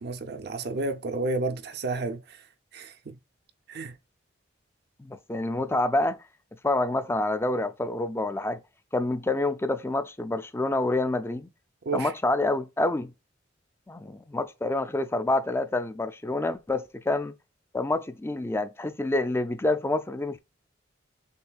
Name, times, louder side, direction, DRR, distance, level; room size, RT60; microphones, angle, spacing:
voice 1, 0.0-2.4 2.7-3.2 3.7-3.9 11.9-12.1, right 3 dB, 55° right, 0.5 m, -31 dB
voice 2, 5.0-6.2 6.6-8.6 8.9-11.5 11.9-13.1 13.9-17.3 17.7-20.4, left 2 dB, 15° left, 0.4 m, -27 dB
6.6 x 2.6 x 2.3 m
head